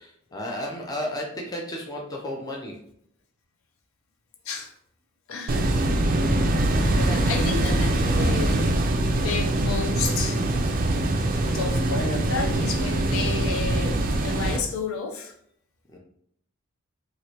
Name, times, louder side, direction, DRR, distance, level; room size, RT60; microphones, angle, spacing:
voice 1, 0.0-2.8 7.6-8.0 15.9-16.0, left 1 dB, 20° left, -1 dB, 0.5 m, -33 dB
voice 2, 5.3-5.7 6.8-8.8 9.1-10.4 11.5-15.3, left 4 dB, 75° left, 2 dB, 0.5 m, -31 dB
sound 1, 5.5-14.6, right 1 dB, 40° right, 0.3 m, -23 dB
3.0 x 2.5 x 2.8 m, 0.68 s
head